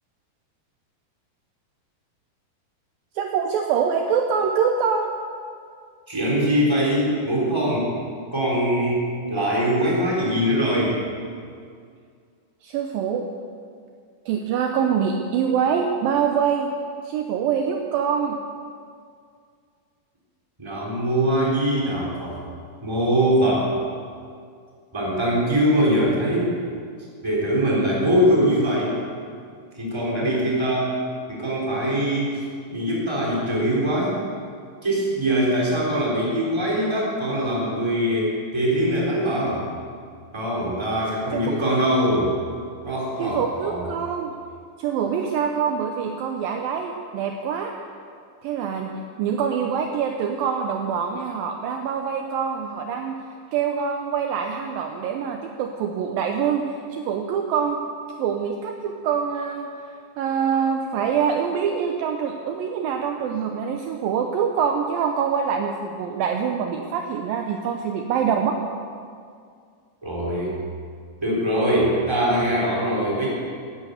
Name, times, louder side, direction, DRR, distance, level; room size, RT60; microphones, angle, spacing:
voice 1, 3.2-5.1 12.6-13.3 14.3-16.7 17.0-18.4 35.3-35.4 41.3-41.6 43.2-44.3 44.8-47.7 48.4-48.9 49.2-53.1 53.5-57.8 58.2-59.7 60.2-68.6, right 7 dB, 75° right, 3 dB, 2.3 m, -25 dB
voice 2, 6.1-7.9 8.3-11.0 20.6-22.4 22.8-23.7 24.9-26.6 27.2-28.9 29.7-31.0 31.3-32.4 32.7-34.2 34.8-39.6 40.3-42.3 42.8-43.8 70.0-70.6 71.2-73.3, equal, 5° right, -4 dB, 3.3 m, -22 dB
12.5 x 10.5 x 8.2 m, 2.2 s
omnidirectional pair, 4.5 m